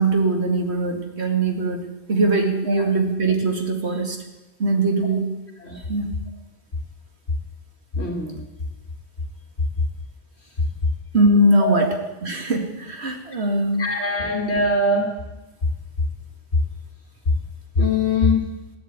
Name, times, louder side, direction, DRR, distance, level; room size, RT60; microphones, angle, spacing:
voice 1, 0.0-4.2 4.6-5.3 5.9-6.1 11.1-11.9 12.2-13.8, right 2 dB, 85° right, 3 dB, 2.6 m, -21 dB
voice 2, 8.0-8.4 11.6-11.8 13.8-15.1 17.8-18.4, left 2 dB, 90° left, 1 dB, 2.6 m, -21 dB
14.5 x 11.0 x 8.9 m, 1.1 s
omnidirectional pair, 1.1 m